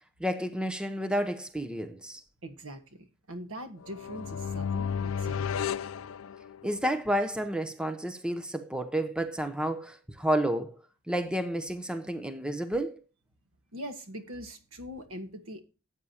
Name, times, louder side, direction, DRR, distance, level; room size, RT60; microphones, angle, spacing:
voice 1, 0.2-2.2 6.6-13.0, right 1 dB, 5° right, 0.7 m, -31 dB
voice 2, 2.4-5.6 13.7-15.6, equal, 75° right, 1.6 m, -42 dB
sound 1, 3.8-6.9, left 7 dB, 75° left, 0.4 m, -33 dB
13.5 x 8.4 x 2.9 m
head